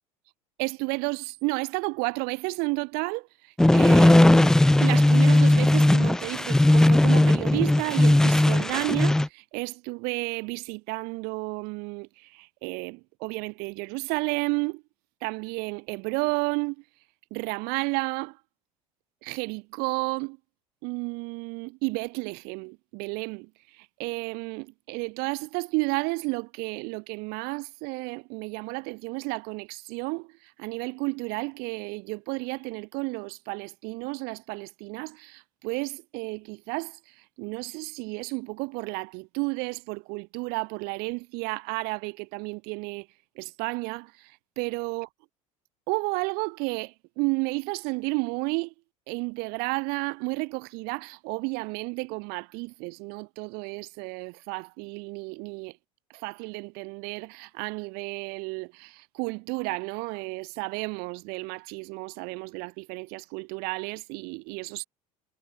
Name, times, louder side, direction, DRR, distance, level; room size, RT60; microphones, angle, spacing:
voice 1, 0.6-14.8 15.2-16.8 17.3-18.4 19.2-20.4 20.8-43.1 43.4-45.1 45.9-48.7 49.1-55.8 56.1-64.8, right 31 dB, 55° right, 1.8 m, -32 dB
sound 1, 3.6-9.3, left 1 dB, 5° left, 0.3 m, -18 dB
figure-of-eight pair, 65°, 19 cm